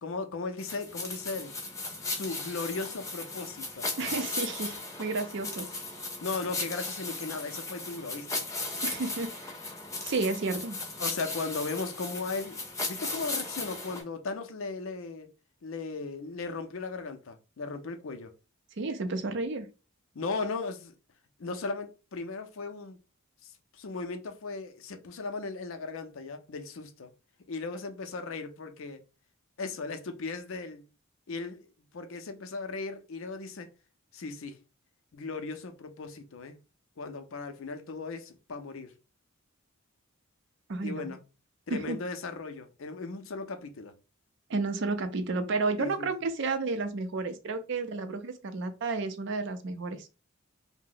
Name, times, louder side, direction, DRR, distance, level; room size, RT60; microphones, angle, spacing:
voice 1, 0.0-1.6 2.0-3.9 6.2-8.5 11.0-12.6 12.9-15.3 15.6-18.3 20.1-20.9 21.4-23.0 23.4-27.1 27.5-29.0 29.6-30.8 31.3-33.7 34.1-34.6 35.1-36.6 37.0-38.9 40.8-41.2 41.7-43.9 45.8-46.1, left 3 dB, 65° left, 0.5 m, -37 dB
sound 1, 0.6-14.0, left 3 dB, 15° left, 0.6 m, -36 dB
voice 2, 4.0-5.7 8.8-9.5 10.0-10.8 18.8-19.7 40.7-41.1 41.7-42.0 44.5-50.1, right 3 dB, 55° right, 0.4 m, -32 dB
2.8 x 2.0 x 3.8 m
head